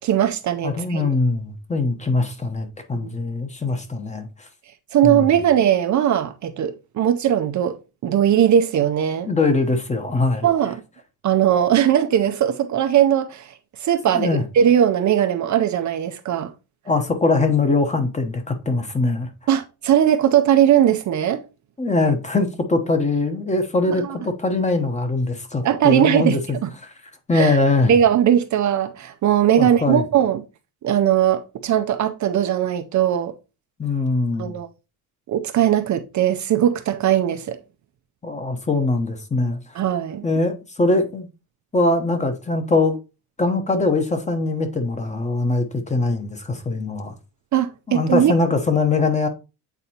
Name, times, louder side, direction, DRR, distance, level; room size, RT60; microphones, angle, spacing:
voice 1, 0.0-1.0 3.0-3.1 4.9-7.8 8.0-9.3 10.4-10.8 11.2-13.5 13.8-14.3 14.5-16.5 19.5-21.4 25.6-26.7 27.3-27.6 27.9-30.4 30.8-33.3 34.4-34.7 35.3-37.6 39.8-40.2 47.5-48.3, right 10 dB, 50° right, 0.5 m, -19 dB
voice 2, 0.6-4.3 5.0-5.3 9.3-10.5 14.1-14.4 16.9-19.3 21.8-26.9 27.3-27.9 29.6-30.0 33.8-34.5 38.2-39.6 40.2-41.3 41.7-43.0 43.4-47.1 47.9-49.3, left 3 dB, 20° left, 0.9 m, -22 dB
8.2 x 4.1 x 2.8 m
cardioid pair, 140°, 39 cm